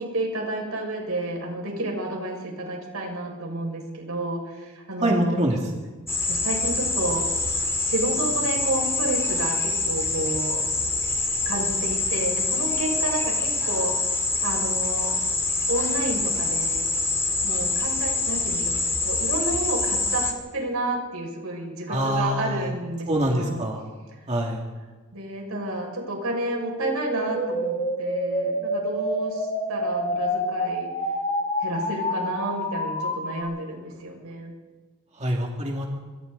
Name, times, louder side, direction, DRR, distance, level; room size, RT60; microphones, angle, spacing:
voice 1, 0.0-5.4 6.3-7.3 7.8-10.6 11.4-14.0 14.4-15.1 15.7-16.9 17.4-20.3 20.5-23.6 25.1-30.9 31.6-34.5, right 1 dB, 80° right, 1 dB, 6.4 m, -30 dB
voice 2, 5.0-5.7 21.9-22.7 23.1-23.9 24.3-24.6 35.1-35.9, right 1 dB, 30° right, -1 dB, 2.6 m, -25 dB
sound 1, 6.1-20.3, left 3 dB, 15° left, 2.7 m, -25 dB
sound 2, 26.5-33.4, equal, 30° left, 6.7 m, -28 dB
26.5 x 24.5 x 4.1 m, 1.4 s
head